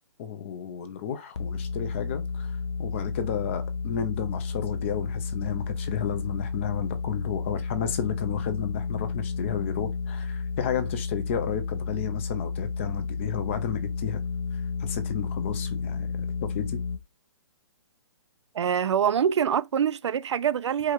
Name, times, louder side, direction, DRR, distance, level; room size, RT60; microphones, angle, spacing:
voice 1, 0.2-2.5 2.8-14.2 14.8-16.1 16.4-16.8, left 8 dB, 25° left, 0.6 m, -32 dB
sound 1, 1.4-17.0, left 5 dB, 75° left, 0.7 m, -32 dB
voice 2, 18.5-20.9, right 8 dB, 75° right, 0.5 m, -25 dB
4.8 x 2.4 x 4.5 m
hypercardioid pair, 165°, 15 cm